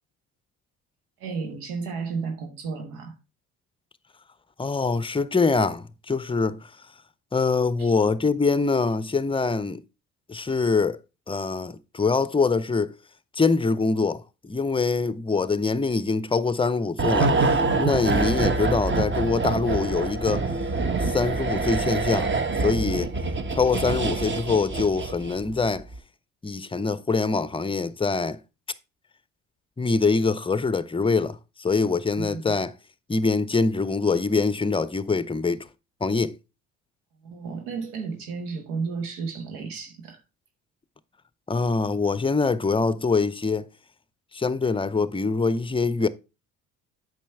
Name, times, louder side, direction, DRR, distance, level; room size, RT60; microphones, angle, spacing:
voice 1, 1.2-3.1 7.8-7.9 32.2-32.5 37.2-40.2, right 5 dB, 80° right, 1.4 m, -33 dB
voice 2, 4.6-6.7 7.3-9.8 10.3-11.0 11.3-12.9 13.3-20.5 21.0-22.3 22.6-23.1 23.5-25.9 26.4-28.4 29.8-32.7 33.1-35.7 36.0-36.4 41.5-43.7 44.3-46.1, left 4 dB, 10° left, 0.6 m, -24 dB
sound 1, 17.0-25.5 25.8-26.0, right 3 dB, 25° right, 1.0 m, -25 dB
8.4 x 6.3 x 3.4 m
hypercardioid pair, 55°, 44 cm